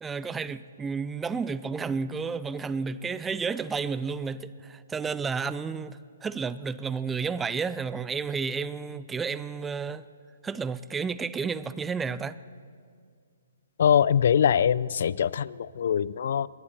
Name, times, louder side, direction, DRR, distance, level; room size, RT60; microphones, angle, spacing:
voice 1, 0.0-10.1 10.4-12.4, right 5 dB, 10° right, 0.5 m, -31 dB
voice 2, 13.8-16.5, left 8 dB, 60° left, 0.4 m, -23 dB
28.5 x 11.5 x 4.3 m
hypercardioid pair, 135°, 0 cm